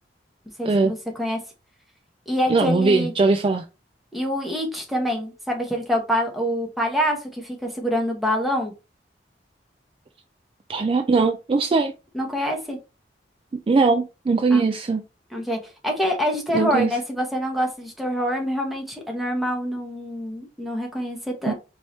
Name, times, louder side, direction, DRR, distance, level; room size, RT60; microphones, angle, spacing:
voice 1, 0.6-1.4 2.3-3.1 4.1-8.7 12.1-12.8 14.5-14.6 15.3-21.5, equal, ahead, 1.0 m, -26 dB
voice 2, 2.5-3.6 10.7-11.9 13.7-15.0 16.5-16.9 21.5-21.6, right 3 dB, 30° right, 0.3 m, -20 dB
4.6 x 2.8 x 3.1 m
head